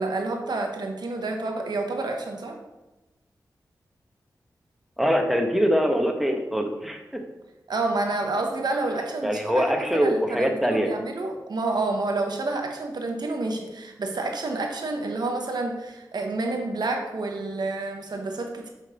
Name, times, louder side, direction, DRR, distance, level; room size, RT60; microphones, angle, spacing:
voice 1, 0.0-2.6 7.7-9.6 9.9-18.7, right 2 dB, 70° right, 3 dB, 1.0 m, -29 dB
voice 2, 5.0-7.2 9.2-10.9, equal, ahead, 3 dB, 1.2 m, -23 dB
6.2 x 3.8 x 5.3 m, 1.0 s
cardioid pair, 45°, 7 cm